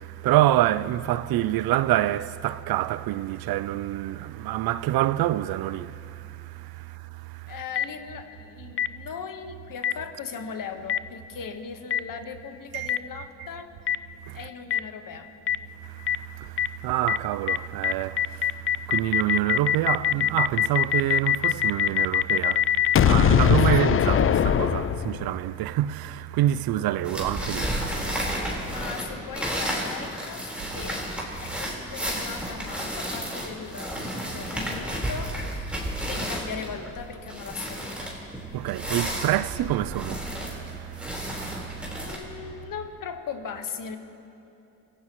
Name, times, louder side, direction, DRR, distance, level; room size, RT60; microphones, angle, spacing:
voice 1, 0.0-7.5 12.7-12.9 14.3-14.4 15.8-28.1 35.9-36.1 38.5-42.1, right 14 dB, 70° right, 0.5 m, -27 dB
voice 2, 7.5-13.7 14.3-15.3 23.7-23.8 28.0-28.3 28.6-30.4 30.7-31.0 31.4-35.3 36.0-38.1 41.9-44.0, left 6 dB, 60° left, 1.4 m, -38 dB
Boom, 7.8-7.9 8.8-8.9 9.8-9.9 10.9-11.0 11.9-12.0 12.9-13.0 13.9-14.0 14.7-14.8 15.5-15.6 16.1-16.2 16.6-16.7 17.1-17.2 17.5-17.6 17.8-25.4, left 9 dB, 35° left, 0.4 m, -21 dB
sound 1, 27.0-42.1, equal, 5° right, 4.2 m, -32 dB
27.0 x 15.5 x 3.1 m
cardioid pair, 75°, 38 cm